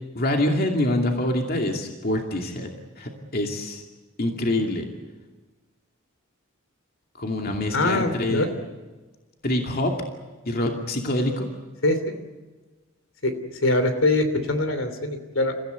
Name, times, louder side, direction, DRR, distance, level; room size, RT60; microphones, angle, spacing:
voice 1, 0.1-2.7 3.0-3.8 4.2-4.9 7.2-8.5 9.4-10.0 10.5-11.5, left 1 dB, 45° left, 2 dB, 2.5 m, -25 dB
voice 2, 7.7-8.5 11.8-12.0 13.2-15.5, left 2 dB, 75° left, 8 dB, 3.0 m, -23 dB
29.5 x 15.5 x 9.4 m, 1.2 s
head